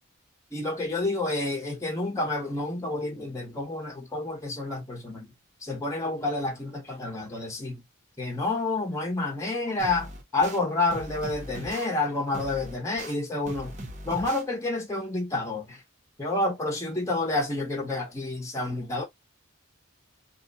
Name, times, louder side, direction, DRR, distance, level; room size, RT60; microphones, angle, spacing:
voice 1, 0.5-5.3 5.6-7.8 8.2-13.7 14.1-15.8 16.2-19.0, left 2 dB, 15° left, 0.8 m, -29 dB
sound 1, 9.8-10.6 10.9-11.9 12.3-13.1 13.5-14.4, right 1 dB, 35° right, 0.8 m, -39 dB
2.8 x 2.2 x 3.9 m
head